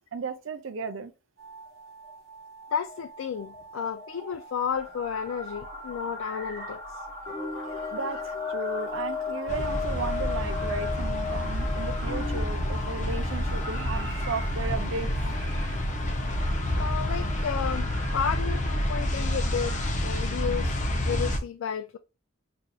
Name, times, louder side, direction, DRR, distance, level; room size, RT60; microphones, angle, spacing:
voice 1, 0.1-1.1 7.8-15.1, right 4 dB, 70° right, 0.5 m, -35 dB
sound 1, 1.4-17.5, left 5 dB, 50° left, 1.1 m, -38 dB
voice 2, 2.7-6.8 7.6-7.9 16.7-17.9 18.1-19.8 20.0-22.0, left 7 dB, 75° left, 0.3 m, -32 dB
sound 2, 4.7-19.9, equal, 10° left, 1.9 m, -44 dB
sound 3, 9.5-21.4, left 1 dB, 35° left, 0.6 m, -29 dB
5.5 x 2.5 x 2.3 m
head